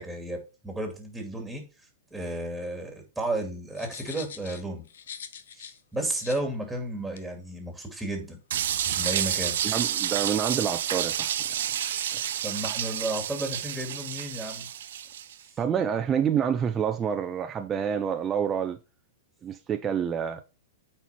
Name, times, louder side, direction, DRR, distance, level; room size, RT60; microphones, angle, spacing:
voice 1, 0.0-1.6 2.1-4.9 5.5-8.4 8.9-9.6 12.4-14.7, right 1 dB, ahead, 2.4 m, -33 dB
sound 1, 3.8-5.8 6.1-6.4 7.2-7.3, left 7 dB, 80° left, 0.8 m, -43 dB
sound 2, 8.5-15.3, right 10 dB, 70° right, 0.7 m, -30 dB
voice 2, 9.6-11.5 11.8-12.2 15.6-18.8 19.4-20.4, right 8 dB, 25° right, 0.6 m, -28 dB
8.2 x 4.5 x 4.3 m
hypercardioid pair, 120°, 0 cm